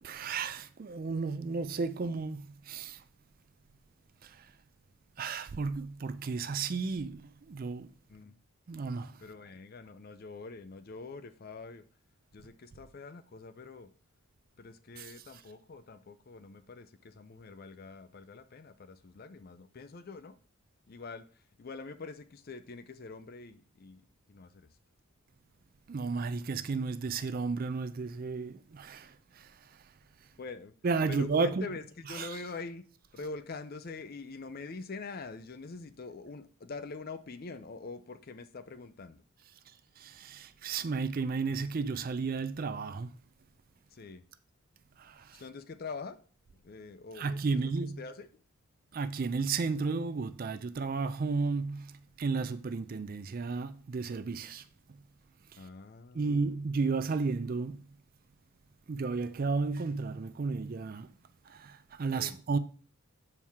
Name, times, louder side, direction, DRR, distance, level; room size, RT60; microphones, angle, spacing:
voice 1, 0.0-3.0 4.2-4.5 5.2-7.9 8.7-9.2 15.0-15.1 25.9-29.6 30.8-31.7 32.1-32.4 40.0-43.1 45.0-45.4 47.2-48.0 48.9-54.7 55.5-55.6 56.1-57.9 58.9-61.1 61.5-62.6, right 4 dB, 40° right, 0.4 m, -33 dB
voice 2, 9.2-11.8 12.3-13.9 14.6-20.3 20.9-24.0 24.3-24.7 30.4-30.7 31.1-32.8 33.1-39.2 43.9-44.2 45.3-46.2 46.6-48.4 55.6-56.5 62.1-62.4, left 4 dB, 40° left, 0.4 m, -45 dB
7.1 x 4.5 x 3.6 m
head